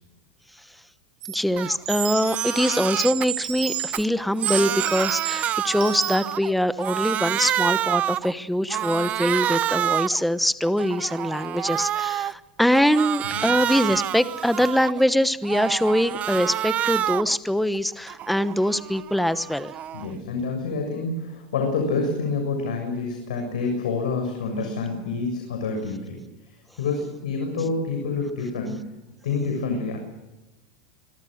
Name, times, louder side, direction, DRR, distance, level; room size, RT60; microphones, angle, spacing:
sound 1, 1.2-1.4 1.9-4.0 4.4-5.4 5.8-6.3, right 12 dB, 75° right, 4.6 m, -30 dB
voice 1, 1.3-19.7, equal, ahead, 12 dB, 1.0 m, -23 dB
Crying sobbing, 1.6-1.8 2.1-3.3 3.7-6.5 6.8-8.3 8.7-10.2 10.6-12.3 12.7-15.0 15.4-17.4 17.7-20.1, right 11 dB, 35° right, 0.8 m, -28 dB
voice 2, 19.9-26.2 26.8-28.8 29.2-30.0, left 4 dB, 90° left, 3 dB, 7.1 m, -27 dB
25.0 x 24.0 x 6.6 m, 1.0 s
supercardioid pair, 120°, 4 cm